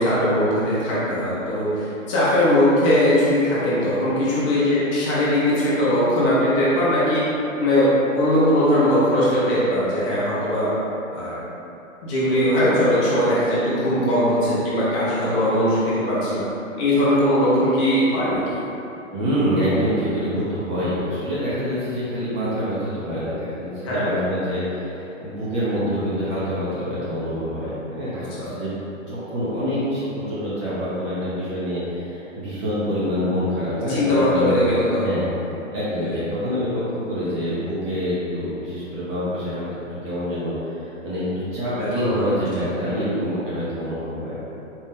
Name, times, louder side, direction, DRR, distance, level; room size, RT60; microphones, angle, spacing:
voice 1, 0.0-7.2 7.6-10.7 11.1-11.4 12.0-16.4 16.8-18.5 23.8-24.1 28.4-28.5 33.9-35.2 36.0-36.2 41.8-42.3 42.9-43.2, left 1 dB, 25° left, -9 dB, 0.8 m, -20 dB
voice 2, 19.1-28.7 29.1-34.6 34.9-35.3 35.7-39.7 40.0-41.2 41.5-44.5, equal, 25° right, -10 dB, 0.7 m, -26 dB
4.3 x 2.4 x 3.6 m, 2.9 s
hypercardioid pair, 140°, 40 cm